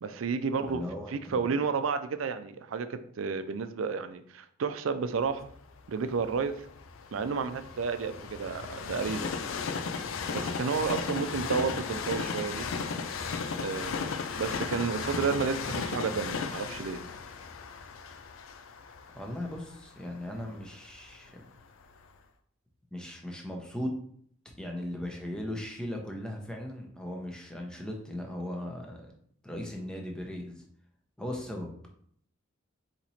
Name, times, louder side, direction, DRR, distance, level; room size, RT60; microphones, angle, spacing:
voice 1, 0.0-0.8 1.1-5.5 5.9-6.5 7.1-9.4 10.3-12.7 13.6-17.0, right 5 dB, 85° right, 10 dB, 0.4 m, -31 dB
voice 2, 0.7-1.4 19.1-21.4 22.9-23.9 24.6-29.1 29.4-30.6 31.2-31.7, left 1 dB, 5° left, 1 dB, 0.7 m, -38 dB
Train, 5.4-21.4 22.0-22.1, left 5 dB, 85° left, 0.4 m, -36 dB
4.3 x 2.9 x 4.1 m, 0.62 s
head